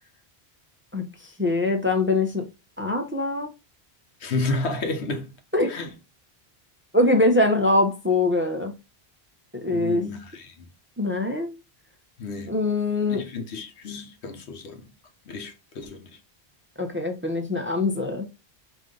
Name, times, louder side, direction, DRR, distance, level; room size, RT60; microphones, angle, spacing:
voice 1, 1.4-2.4 2.8-3.5 5.5-5.7 6.9-8.7 9.6-10.0 11.0-11.5 12.5-13.2 16.8-18.3, left 2 dB, 15° right, 0.5 m, -23 dB
voice 2, 4.2-5.3 5.7-5.9 9.7-10.5 12.2-12.5 13.1-14.9 15.3-16.2, left 3 dB, 85° left, 1.1 m, -31 dB
4.9 x 2.7 x 3.7 m
omnidirectional pair, 1.1 m